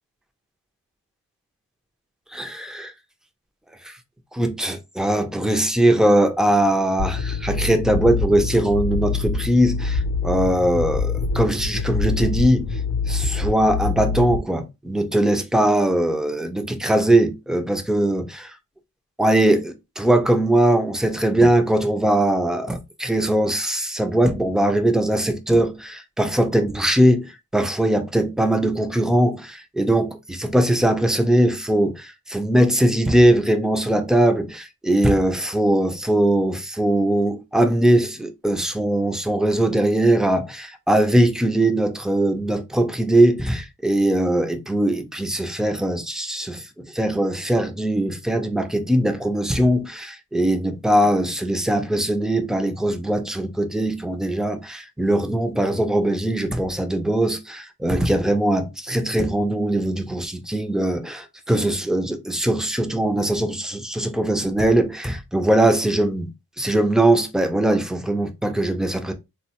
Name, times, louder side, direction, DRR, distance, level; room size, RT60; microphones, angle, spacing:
voice 1, 2.3-2.9 3.9-4.0 4.3-12.7 13.1-18.6 19.2-66.3 66.6-69.1, right 1 dB, ahead, 0.4 m, -20 dB
sound 1, 7.0-14.4, left 4 dB, 55° left, 0.7 m, -25 dB
3.3 x 2.1 x 2.8 m
cardioid pair, 90°, 36 cm